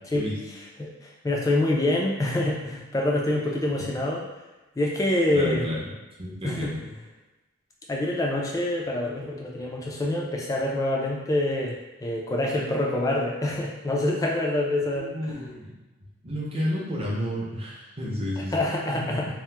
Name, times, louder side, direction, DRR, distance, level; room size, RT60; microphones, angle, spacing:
voice 1, 1.2-4.3 4.8-5.7 6.4-6.7 7.9-15.4 18.4-19.3, left 1 dB, 15° left, -2 dB, 0.3 m, -26 dB
voice 2, 5.3-5.8 6.2-6.8 14.8-15.7 16.2-18.6 19.0-19.3, equal, 25° right, -5 dB, 0.6 m, -31 dB
2.8 x 2.0 x 3.3 m, 1.1 s
head